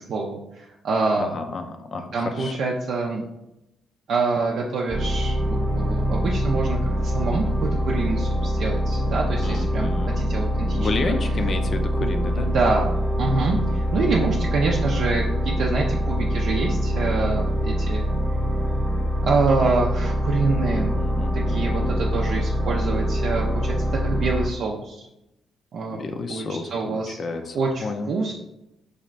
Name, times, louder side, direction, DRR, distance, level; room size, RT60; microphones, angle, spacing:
voice 1, 0.1-1.3 2.1-3.2 4.1-9.9 10.2-10.9 12.0-12.1 12.4-12.9 13.2-18.0 19.2-20.9 21.3-25.1 25.7-26.0 26.3-27.2 27.5-28.3, right 3 dB, 70° right, -2 dB, 0.4 m, -26 dB
voice 2, 1.2-2.5 9.4-10.2 10.7-12.5 20.6-22.1 25.9-28.1, left 4 dB, 45° left, 6 dB, 0.4 m, -31 dB
sound 1, 4.9-24.5, equal, ahead, 0.7 m, -24 dB
4.1 x 2.5 x 3.1 m, 0.88 s
cardioid pair, 90°, 0 cm